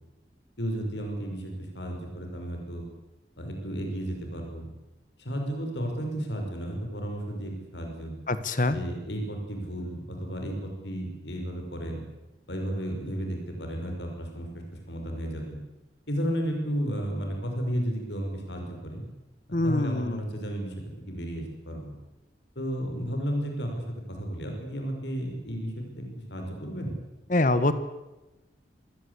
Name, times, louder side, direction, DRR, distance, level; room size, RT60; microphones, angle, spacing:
voice 1, 0.6-2.8 3.4-4.7 5.2-8.1 8.7-12.0 12.5-14.5 14.9-15.6 16.1-19.0 19.5-20.7 21.1-21.9 22.6-23.7 24.1-26.9, equal, 90° left, 3 dB, 5.9 m, -33 dB
voice 2, 8.3-8.8 19.5-20.2 27.3-27.7, left 2 dB, 45° left, 12 dB, 1.5 m, -24 dB
27.0 x 17.0 x 8.4 m, 1.0 s
head